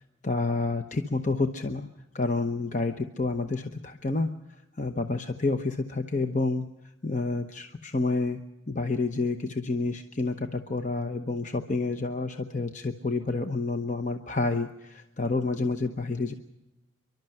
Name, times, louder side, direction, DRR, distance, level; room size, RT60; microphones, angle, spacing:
voice 1, 0.2-1.9 2.1-4.3 4.8-6.7 7.0-8.4 8.7-16.3, left 3 dB, 35° left, 6 dB, 0.9 m, -29 dB
29.0 x 12.0 x 7.8 m, 0.97 s
head